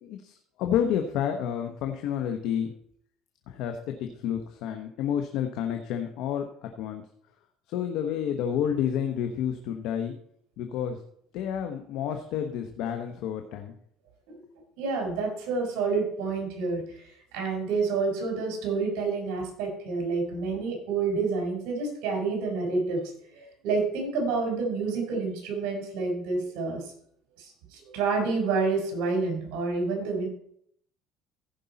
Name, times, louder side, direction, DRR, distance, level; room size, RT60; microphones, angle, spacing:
voice 1, 0.0-2.7 3.5-7.0 7.7-10.1 10.6-11.0 11.3-13.7, left 9 dB, 70° left, 5 dB, 1.1 m, -30 dB
voice 2, 14.8-23.0 23.3-26.8 27.4-27.5 27.7-30.3, right 4 dB, 75° right, 2 dB, 4.2 m, -28 dB
15.5 x 5.4 x 4.1 m, 0.66 s
cardioid pair, 125°, 0 cm